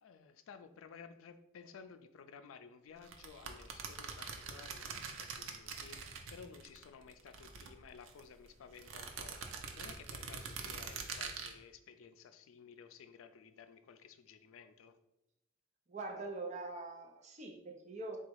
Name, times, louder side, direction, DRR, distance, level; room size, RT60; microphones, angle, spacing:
voice 1, 0.0-6.0 6.3-15.0, left 6 dB, 85° left, 10 dB, 0.4 m, -55 dB
sound 1, 3.0-6.8 7.1-8.2 8.8-11.5, right 5 dB, 85° right, 0.6 m, -44 dB
voice 2, 15.9-18.2, right 3 dB, 35° right, 2 dB, 0.6 m, -43 dB
3.9 x 2.3 x 4.5 m, 0.89 s
head